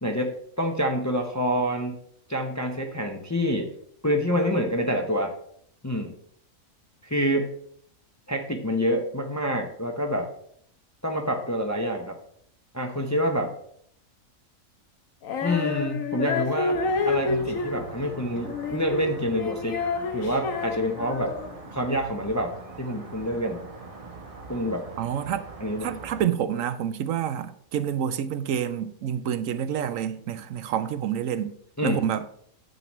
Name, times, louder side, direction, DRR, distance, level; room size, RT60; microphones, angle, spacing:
voice 1, 0.0-2.0 2.3-3.7 4.0-5.3 5.8-6.2 7.0-7.5 8.3-10.3 11.0-12.2 12.7-13.5 15.4-16.8 17.0-19.8 20.1-21.3 21.7-23.6 24.5-24.8 25.6-25.9 31.8-32.0, equal, 15° left, 0.7 m, -27 dB
Female singing, 15.2-21.6, left 4 dB, 80° left, 1.2 m, -29 dB
sound 1, 16.7-26.3, right 3 dB, 30° right, 0.9 m, -43 dB
voice 2, 25.0-25.5 25.8-31.5 31.8-32.3, right 9 dB, 75° right, 1.0 m, -28 dB
9.3 x 7.4 x 3.1 m
omnidirectional pair, 1.4 m